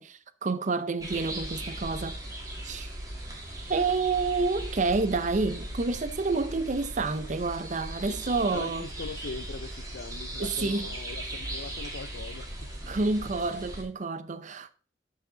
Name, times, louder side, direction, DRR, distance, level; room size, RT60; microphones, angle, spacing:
voice 1, 0.0-2.2 2.6-2.9 3.7-8.9 10.4-10.9 12.9-14.7, right 3 dB, 45° right, 0.6 m, -29 dB
sound 1, 1.0-13.8, right 1 dB, 20° right, 2.1 m, -38 dB
voice 2, 8.5-13.0, left 4 dB, 80° left, 0.5 m, -41 dB
11.5 x 4.9 x 3.9 m
head